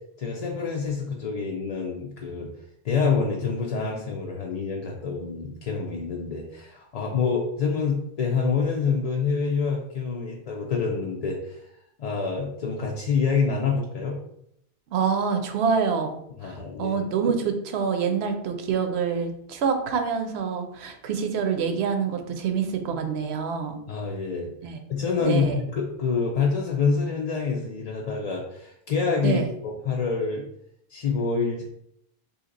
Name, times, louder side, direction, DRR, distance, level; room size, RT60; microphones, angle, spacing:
voice 1, 0.2-2.5 2.8-11.7 12.0-14.2 16.4-17.0 23.9-24.5 24.9-30.5 30.9-31.6, left 5 dB, 55° left, -2 dB, 0.4 m, -27 dB
voice 2, 14.9-23.8 24.6-24.8 25.2-25.6 29.2-29.5, right 6 dB, 80° right, 6 dB, 0.8 m, -26 dB
2.8 x 2.7 x 3.8 m, 0.75 s
omnidirectional pair, 1.1 m